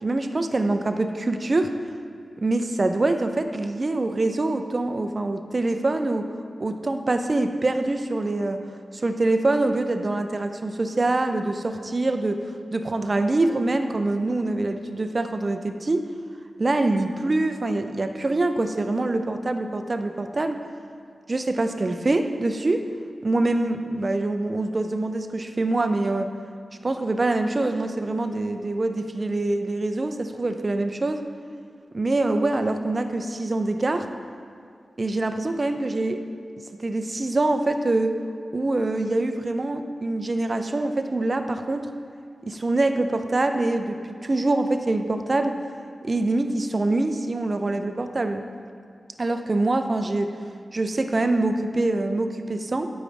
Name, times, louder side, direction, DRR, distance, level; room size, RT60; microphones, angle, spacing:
voice 1, 0.0-1.7 2.4-6.3 6.6-8.6 8.9-16.1 16.6-20.6 21.3-22.9 23.2-26.3 26.8-31.3 31.9-34.1 35.0-36.2 36.8-38.1 38.5-41.9 42.4-45.6 46.0-48.4 49.2-50.3 50.7-52.9, right 2 dB, 45° right, 7 dB, 0.6 m, -24 dB
13.5 x 5.3 x 3.4 m, 2.3 s
cardioid pair, 40°, 0 cm